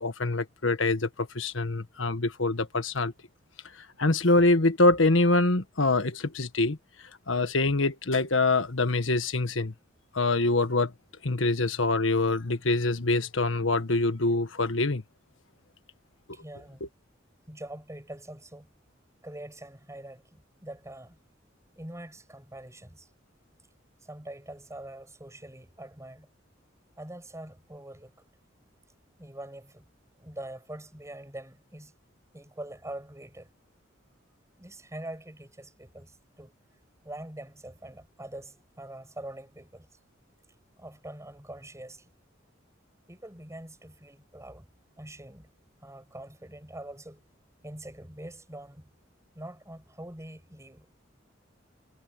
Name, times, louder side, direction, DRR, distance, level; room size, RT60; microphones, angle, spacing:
voice 1, 0.0-3.1 4.0-6.8 7.3-9.7 10.1-10.9 11.2-15.0 16.8-16.9, left 2 dB, 85° left, 1.5 m, -25 dB
voice 2, 16.3-16.8 17.5-18.7 19.2-21.2 21.8-23.1 24.0-26.3 27.0-28.2 29.2-29.8 30.2-31.9 32.3-33.5 34.6-36.5 37.0-39.9 40.8-42.1 43.1-44.7 45.0-45.5 45.8-47.2 47.6-48.9 49.3-50.9, right 1 dB, 15° right, 7.5 m, -44 dB
head